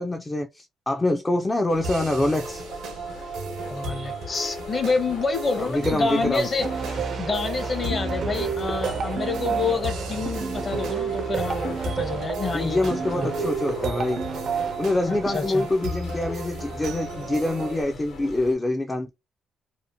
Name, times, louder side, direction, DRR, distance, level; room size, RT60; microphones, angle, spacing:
voice 1, 0.0-2.6 5.6-6.5 12.5-14.3 14.8-19.1, left 2 dB, 20° left, 0.3 m, -25 dB
sound 1, 1.7-18.5, left 3 dB, 75° left, 1.1 m, -40 dB
sound 2, 1.8-17.8, right 2 dB, 85° right, 0.8 m, -35 dB
voice 2, 3.7-6.7 7.2-13.3 15.1-15.7, left 4 dB, 40° left, 0.7 m, -28 dB
sound 3, 6.6-15.4, right 6 dB, 55° right, 0.4 m, -30 dB
2.7 x 2.1 x 2.6 m
cardioid pair, 90°, 0 cm